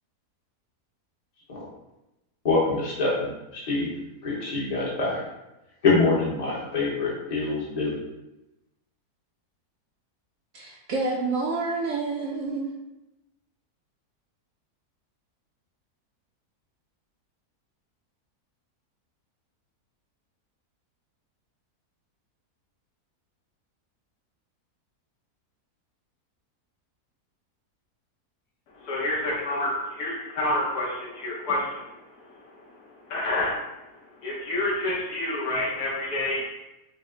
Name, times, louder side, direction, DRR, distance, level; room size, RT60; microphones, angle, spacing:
voice 1, 2.4-3.9 4.2-5.2 5.8-8.0, left 3 dB, 30° left, -5 dB, 0.8 m, -25 dB
voice 2, 10.5-12.7, right 3 dB, 70° right, -2 dB, 0.8 m, -28 dB
voice 3, 28.7-36.4, left 1 dB, 80° left, -5 dB, 1.4 m, -29 dB
4.9 x 2.0 x 3.7 m, 0.95 s
omnidirectional pair, 1.7 m